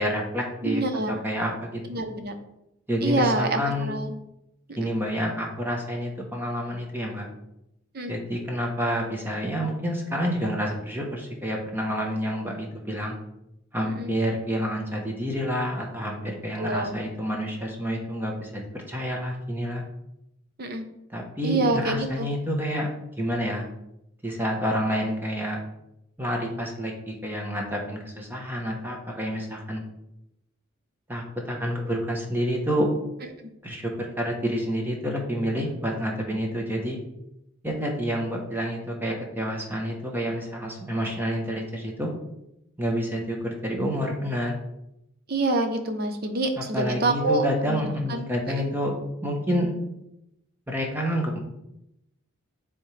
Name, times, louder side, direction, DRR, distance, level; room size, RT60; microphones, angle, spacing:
voice 1, 0.0-0.8 1.2-1.8 2.9-3.9 4.8-7.3 8.1-13.2 13.7-18.6 18.9-19.8 21.1-22.9 23.2-23.7 24.2-25.6 26.2-29.8 31.1-32.9 33.6-37.0 37.6-42.1 42.8-44.5 46.6-49.7 50.7-51.4, equal, 10° right, 0 dB, 1.0 m, -28 dB
voice 2, 0.6-1.1 1.9-2.3 3.0-4.1 4.8-4.9 7.9-8.1 13.8-14.1 16.6-16.9 20.6-20.8 21.4-22.3 45.3-47.8 48.1-48.3 48.6-48.7, right 2 dB, 50° right, 6 dB, 0.8 m, -26 dB
9.5 x 3.6 x 3.3 m, 0.85 s
head